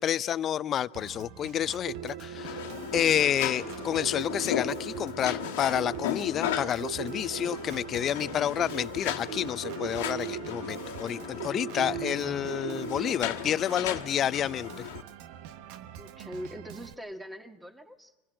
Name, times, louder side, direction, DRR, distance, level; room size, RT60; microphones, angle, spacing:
voice 1, 0.0-2.6 2.9-14.9, left 10 dB, 40° left, 0.6 m, -29 dB
Organ, 0.9-16.9, right 10 dB, 70° right, 0.9 m, -46 dB
sound 1, 1.9-13.1, right 10 dB, 90° right, 1.5 m, -40 dB
sound 2, 2.4-15.0, left 10 dB, 85° left, 1.6 m, -36 dB
voice 2, 16.0-18.1, equal, 10° right, 2.0 m, -42 dB
24.0 x 15.5 x 7.7 m
supercardioid pair, 100°, 0 cm